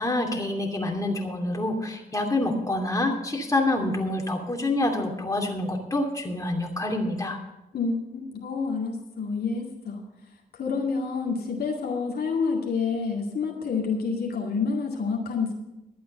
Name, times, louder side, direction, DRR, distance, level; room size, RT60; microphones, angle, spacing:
voice 1, 0.0-7.4, left 2 dB, 15° left, 1 dB, 2.7 m, -27 dB
voice 2, 7.7-10.0 10.5-15.5, left 5 dB, 55° left, 0 dB, 2.2 m, -28 dB
12.0 x 8.4 x 6.6 m, 0.96 s
hypercardioid pair, 45°, 19 cm